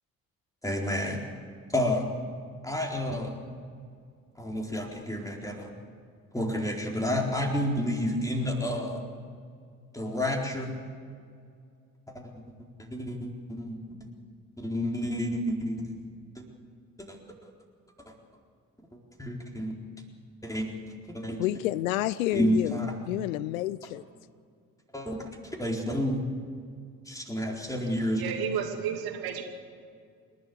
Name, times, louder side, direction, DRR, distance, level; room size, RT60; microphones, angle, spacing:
voice 1, 0.6-1.2 1.7-2.1 2.6-3.3 4.4-5.7 6.3-9.0 9.9-10.7 12.1-13.8 14.6-16.0 16.4-16.5 17.1-17.2 19.2-19.8 20.4-20.7 21.1-21.4 22.3-22.9 24.9-25.2 25.6-26.2 27.1-28.2, equal, 10° left, 4.3 m, -30 dB
voice 2, 21.4-22.8 23.1-24.0, left 15 dB, 75° left, 0.6 m, -29 dB
voice 3, 28.2-29.4, right 8 dB, 60° right, 2.6 m, -31 dB
28.5 x 12.0 x 8.0 m
figure-of-eight pair, 45°, 41 cm